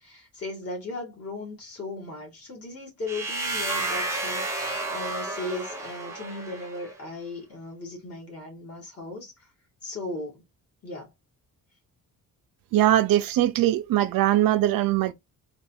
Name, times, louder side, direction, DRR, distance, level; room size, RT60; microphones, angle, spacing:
voice 1, 0.0-9.5 9.8-10.4 10.8-11.1, left 2 dB, 45° left, 1.9 m, -37 dB
sound 1, 3.1-6.9, right 2 dB, 10° right, 0.9 m, -31 dB
voice 2, 12.7-15.1, right 13 dB, 75° right, 0.6 m, -21 dB
3.9 x 2.6 x 2.7 m
cardioid pair, 150°, 34 cm